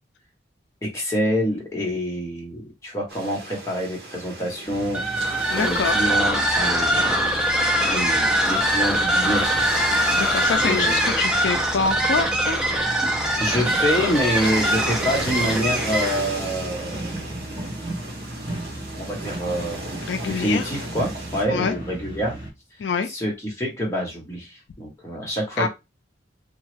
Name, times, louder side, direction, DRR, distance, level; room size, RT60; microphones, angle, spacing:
voice 1, 0.8-5.0 5.6-7.1 7.8-9.7 10.6-11.1 13.1-17.1 19.0-19.9 20.2-22.4 23.1-25.7, equal, 15° left, 1.1 m, -26 dB
sound 1, 3.1-21.4, right 2 dB, 55° right, 1.1 m, -37 dB
sound 2, 4.7-22.5, right 1 dB, 25° right, 1.3 m, -35 dB
sound 3, 4.9-16.3, right 1 dB, 5° right, 0.4 m, -22 dB
voice 2, 5.5-6.0 10.1-12.6 20.1-20.7 21.5-21.7 22.8-23.1 25.6-25.7, left 5 dB, 75° left, 0.4 m, -25 dB
3.0 x 2.2 x 3.2 m
head